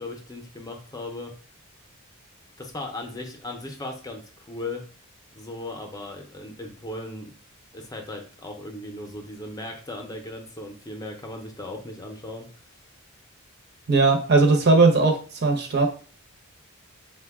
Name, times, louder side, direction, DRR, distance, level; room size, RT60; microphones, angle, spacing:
voice 1, 0.0-1.3 2.6-4.9 5.3-7.4 7.7-12.8, left 2 dB, 15° left, 3 dB, 0.6 m, -37 dB
voice 2, 13.9-15.9, right 3 dB, 50° right, 3 dB, 0.7 m, -18 dB
5.0 x 2.2 x 3.4 m, 0.39 s
head